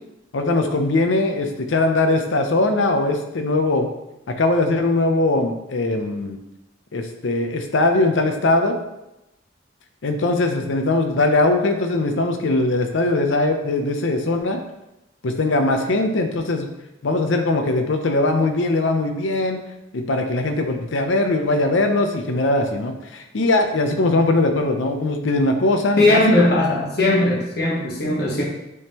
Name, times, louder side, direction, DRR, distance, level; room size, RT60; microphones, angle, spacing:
voice 1, 0.3-3.9 4.3-6.4 6.9-8.8 10.0-14.6 15.2-16.7 17.0-19.6 19.9-26.5 28.4-28.5, left 2 dB, 75° left, 5 dB, 0.6 m, -20 dB
voice 2, 26.0-28.4, left 1 dB, 55° left, -3 dB, 1.1 m, -18 dB
9.3 x 3.6 x 2.9 m, 0.93 s
head